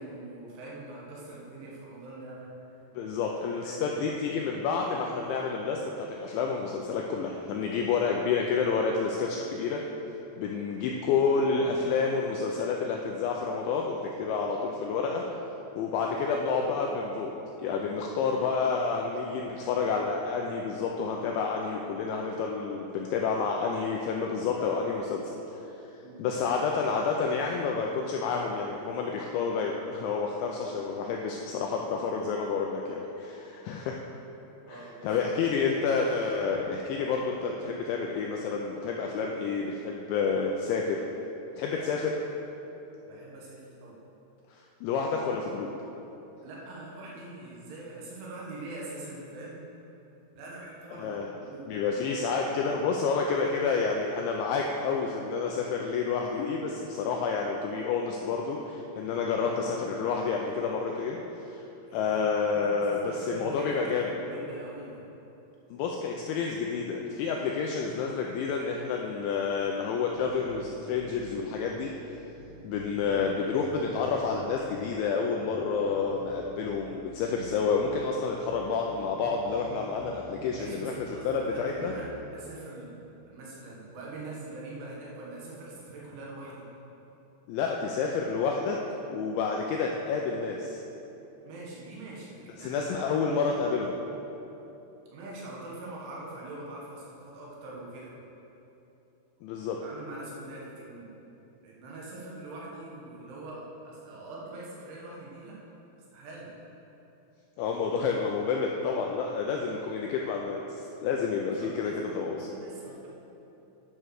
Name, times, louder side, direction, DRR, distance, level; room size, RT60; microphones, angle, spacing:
voice 1, 0.0-2.5 3.5-4.4 26.0-26.2 34.7-35.2 36.6-36.7 41.7-41.8 43.0-44.0 46.4-49.7 50.4-51.7 59.4-59.6 61.9-65.1 73.0-73.3 80.5-82.9 83.3-86.7 91.4-93.2 95.1-98.1 99.8-101.1 101.6-105.6 106.1-106.5 111.6-113.1, right 2 dB, 70° right, -4 dB, 3.9 m, -43 dB
voice 2, 3.0-9.9 10.4-15.2 15.8-17.3 17.6-25.6 26.2-34.0 34.7-41.0 41.6-42.1 44.5-45.7 51.0-51.3 51.7-61.2 61.5-61.6 61.9-64.1 65.7-71.9 72.6-81.9 87.5-88.8 89.1-90.8 92.6-93.9 99.4-99.8 107.6-112.5, left 5 dB, 85° left, 0 dB, 2.6 m, -29 dB
sound 1, 70.1-71.9 72.4-75.0 75.4-78.0 78.4-80.9 81.4-82.0, right 3 dB, 55° right, 2.8 m, -49 dB
11.0 x 5.5 x 6.4 m, 3.0 s
omnidirectional pair, 5.9 m